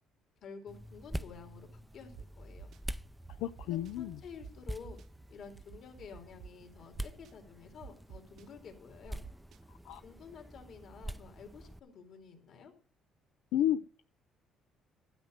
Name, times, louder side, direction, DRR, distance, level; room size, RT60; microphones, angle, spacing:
voice 1, 0.4-2.7 3.7-5.0 5.3-9.2 10.0-12.7, left 6 dB, 55° left, 4 dB, 2.6 m, -51 dB
sound 1, 0.7-11.8, right 1 dB, 5° right, 0.5 m, -46 dB
sound 2, 2.2-2.3 2.6-2.8 3.3-3.9 4.4-4.5 4.8-5.0 5.5-6.5 7.0-7.3 7.8-8.4 9.2-9.6, right 7 dB, 60° right, 0.6 m, -49 dB
voice 2, 3.4-4.2 9.8-10.0 13.5-14.0, left 11 dB, 85° left, 9 dB, 0.4 m, -32 dB
12.0 x 5.2 x 7.9 m, 0.41 s
cardioid pair, 125°, 0 cm